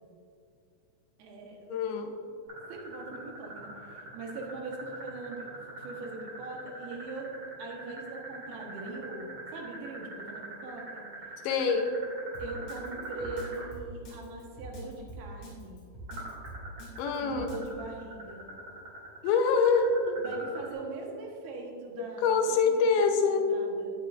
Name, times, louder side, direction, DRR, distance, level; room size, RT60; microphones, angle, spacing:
voice 1, 1.2-1.8 2.7-7.3 7.6-11.1 12.4-15.8 17.2-18.5 20.2-23.9, right 3 dB, 75° right, 0 dB, 3.0 m, -41 dB
voice 2, 1.7-2.1 11.4-11.9 17.0-17.5 19.2-20.2 22.2-23.5, left 5 dB, 80° left, 4 dB, 2.7 m, -25 dB
sound 1, 2.5-13.7 16.1-20.7, right 2 dB, 40° right, 2.5 m, -43 dB
Drum kit, 12.3-17.7, right 1 dB, 40° left, 3.2 m, -44 dB
16.5 x 6.6 x 2.5 m, 2.3 s
omnidirectional pair, 4.4 m